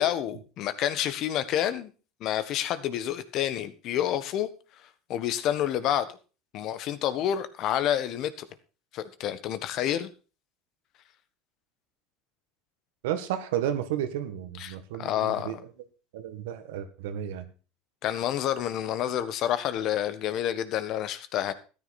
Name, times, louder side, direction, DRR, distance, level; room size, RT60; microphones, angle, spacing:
voice 1, 0.0-1.9 2.2-4.5 5.1-6.1 6.5-8.4 8.9-10.1 14.6-15.5 18.0-21.5, left 11 dB, 55° left, 13 dB, 1.5 m, -28 dB
voice 2, 13.0-15.6 16.1-17.5, right 10 dB, 80° right, 9 dB, 1.8 m, -32 dB
14.0 x 9.9 x 4.3 m, 0.34 s
supercardioid pair, 100°, 0 cm